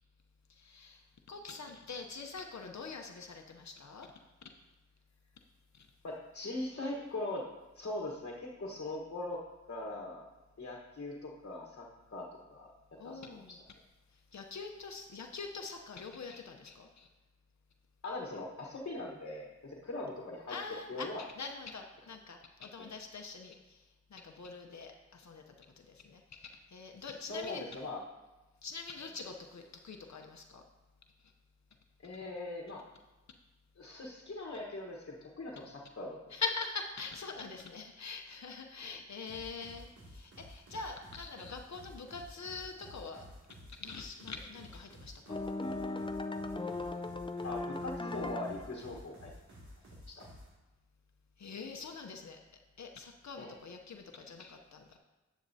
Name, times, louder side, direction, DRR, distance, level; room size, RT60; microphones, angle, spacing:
voice 1, 0.5-4.1 5.7-5.9 13.0-13.6 14.1-17.1 20.5-27.7 28.6-30.6 36.3-43.2 43.7-45.4 51.4-52.4 52.8-55.0, left 4 dB, 65° left, 4 dB, 0.7 m, -44 dB
voice 2, 6.0-7.5 7.7-9.4 9.7-10.3 10.6-12.7 13.0-13.6 18.0-20.6 20.9-21.2 22.8-22.9 27.0-28.0 32.0-32.8 33.8-36.2 38.8-38.9 47.4-49.3 50.1-50.3 53.4-53.5, left 2 dB, 50° left, -1 dB, 1.2 m, -41 dB
sound 1, 39.3-50.5, equal, 75° right, 2.5 m, -53 dB
sound 2, 45.3-48.8, left 2 dB, 15° left, 0.5 m, -38 dB
10.5 x 8.3 x 2.7 m, 1.1 s
cardioid pair, 60°, 30 cm